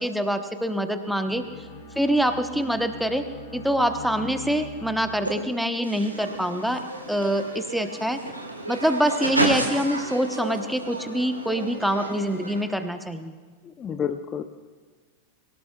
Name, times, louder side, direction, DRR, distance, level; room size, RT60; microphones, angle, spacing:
voice 1, 0.0-1.4 2.0-3.2 3.5-6.8 7.1-8.2 8.7-13.4, equal, ahead, 7 dB, 1.0 m, -25 dB
Bowed string instrument, 1.3-5.7, left 2 dB, 60° left, 5.7 m, -42 dB
sound 1, 5.2-5.3 5.8-12.6, right 1 dB, 85° right, 1.9 m, -31 dB
voice 2, 13.6-14.4, left 8 dB, 25° left, 9 dB, 0.7 m, -30 dB
23.0 x 18.0 x 2.4 m, 1.5 s
figure-of-eight pair, 90°, 0 cm